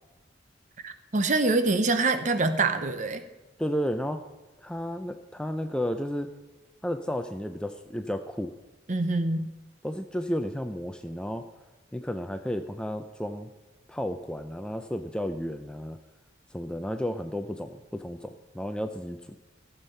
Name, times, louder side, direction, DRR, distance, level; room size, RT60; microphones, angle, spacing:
voice 1, 0.8-3.2 8.9-9.5, right 3 dB, 40° right, 10 dB, 0.8 m, -25 dB
voice 2, 3.6-4.2 4.6-6.3 6.8-8.5 9.8-11.4 11.9-13.5 13.9-16.0 16.5-19.4, equal, 5° left, 7 dB, 0.4 m, -32 dB
15.5 x 7.3 x 5.5 m, 1.1 s
head